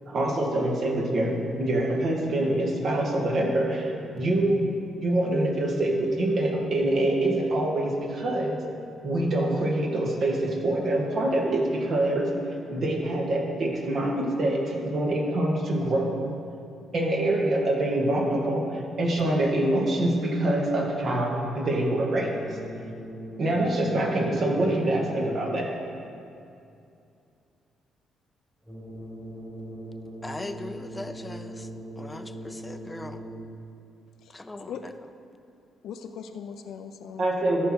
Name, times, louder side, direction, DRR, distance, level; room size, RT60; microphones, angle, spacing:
voice 1, 0.1-4.6 5.0-8.6 9.0-12.3 12.7-16.2 16.9-22.4 23.4-25.7 37.2-37.7, right 1 dB, 55° right, -1 dB, 1.9 m, -25 dB
sound 1, 22.2-25.7 28.6-33.7, right 1 dB, 5° right, 2.0 m, -40 dB
voice 2, 30.2-31.7 32.0-33.2 34.3-34.9, left 2 dB, 15° left, 9 dB, 0.6 m, -39 dB
voice 3, 34.2-34.8 35.8-37.3, left 7 dB, 75° left, 6 dB, 0.4 m, -40 dB
13.5 x 4.6 x 6.2 m, 2.5 s
cardioid pair, 90°, 0 cm